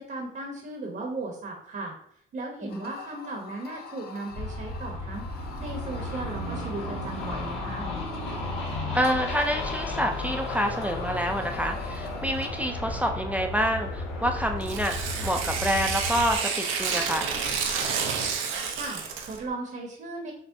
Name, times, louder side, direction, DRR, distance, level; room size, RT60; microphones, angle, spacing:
voice 1, 0.0-1.9 2.3-7.9 18.8-20.3, right 2 dB, 50° right, 0 dB, 0.9 m, -37 dB
voice 2, 2.6-2.9 8.9-14.9 15.2-17.3, equal, 5° right, 4 dB, 0.4 m, -27 dB
sound 1, 2.7-12.8, left 5 dB, 50° left, 0.5 m, -43 dB
sound 2, 4.3-16.4, left 2 dB, 85° left, 1.3 m, -34 dB
Tearing, 14.6-19.4, right 6 dB, 90° right, 0.6 m, -30 dB
6.0 x 2.1 x 2.6 m, 0.68 s
cardioid pair, 90°, 20 cm